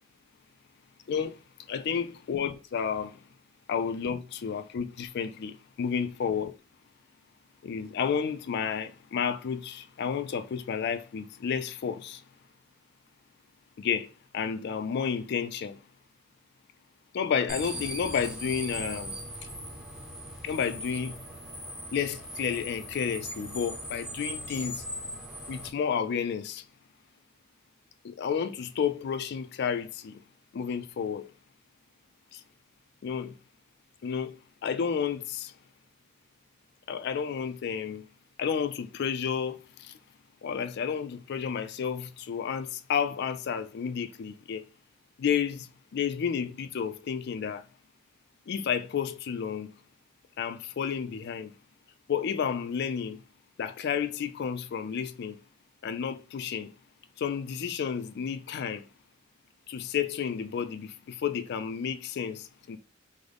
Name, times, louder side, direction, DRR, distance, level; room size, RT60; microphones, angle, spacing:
voice 1, 1.1-1.4 1.7-3.2 3.7-6.5 7.6-12.2 13.8-14.1 14.3-15.8 17.1-19.2 20.4-21.2 21.9-24.9 25.5-26.6 28.0-30.2 30.5-31.3 32.3-32.4 33.0-33.3 34.0-34.3 34.6-35.5 36.9-38.0 38.4-40.0 40.4-44.6 45.2-47.6 48.5-49.7 50.4-51.5 52.1-53.2 53.6-55.4 55.8-56.7 57.2-58.8 59.7-62.8, left 7 dB, 55° left, 0.3 m, -31 dB
sound 1, 17.5-25.7, equal, 5° right, 0.6 m, -39 dB
3.6 x 2.1 x 3.3 m
head